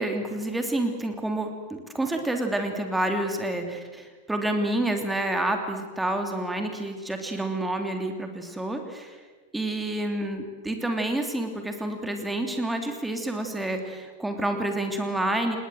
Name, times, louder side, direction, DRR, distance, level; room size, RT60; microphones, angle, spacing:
voice 1, 0.0-9.2 9.5-15.6, right 1 dB, 5° right, 4 dB, 3.2 m, -28 dB
28.5 x 21.5 x 7.9 m, 1.4 s
figure-of-eight pair, 90°, 0 cm